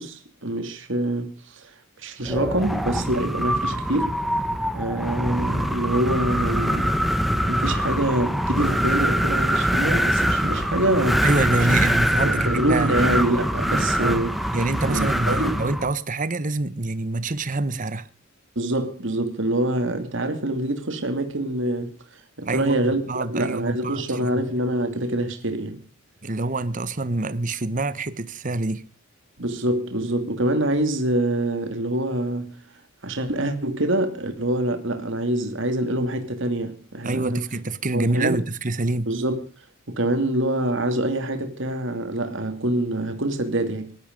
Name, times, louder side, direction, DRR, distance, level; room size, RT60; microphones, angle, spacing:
voice 1, 0.0-4.1 4.7-7.0 7.3-11.3 12.2-14.3 14.9-15.6 18.6-23.0 23.3-25.8 29.4-32.6 33.0-37.4 37.9-38.4 39.1-39.4 39.9-44.0, right 1 dB, 60° right, 2.5 m, -25 dB
Wind, 2.3-15.9, equal, ahead, 1.3 m, -24 dB
voice 2, 11.2-13.0 14.0-14.2 14.5-18.1 22.4-24.3 26.2-28.9 37.0-39.1, right 2 dB, 40° right, 1.1 m, -26 dB
19.5 x 12.5 x 5.3 m
head